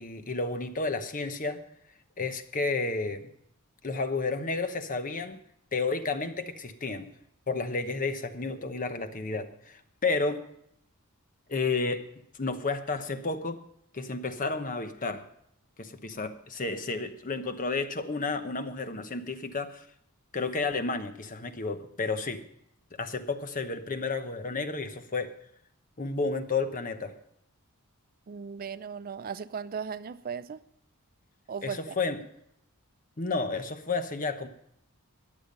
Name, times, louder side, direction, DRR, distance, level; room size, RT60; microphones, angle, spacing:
voice 1, 0.0-1.6 2.2-3.3 3.8-5.4 5.7-7.1 7.5-10.4 11.5-12.0 12.4-13.6 13.9-15.2 15.8-19.9 20.3-22.4 23.0-25.3 26.0-27.1 31.6-32.2 33.2-34.5, left 3 dB, 40° left, 1.0 m, -31 dB
voice 2, 28.3-30.6 31.5-31.9, right 6 dB, 40° right, 0.4 m, -37 dB
13.5 x 10.5 x 5.3 m
head